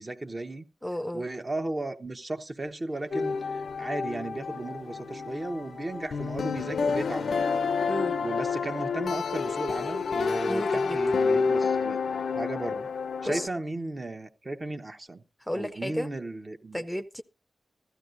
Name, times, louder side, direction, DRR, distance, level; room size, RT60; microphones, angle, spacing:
voice 1, 0.0-0.6 1.1-7.4 7.8-7.9 8.2-12.0 12.3-12.9 13.2-15.2 15.5-16.8, right 2 dB, 35° right, 0.9 m, -35 dB
voice 2, 0.8-1.3 7.9-8.2 10.5-11.0 13.2-13.5 15.4-16.1 16.7-17.2, equal, 5° left, 0.6 m, -32 dB
sound 1, 2.9-4.2 4.5-9.6, right 2 dB, 85° right, 2.3 m, -50 dB
sound 2, 3.1-13.5, left 5 dB, 75° left, 0.5 m, -29 dB
15.0 x 12.5 x 2.6 m
cardioid pair, 60°, 0 cm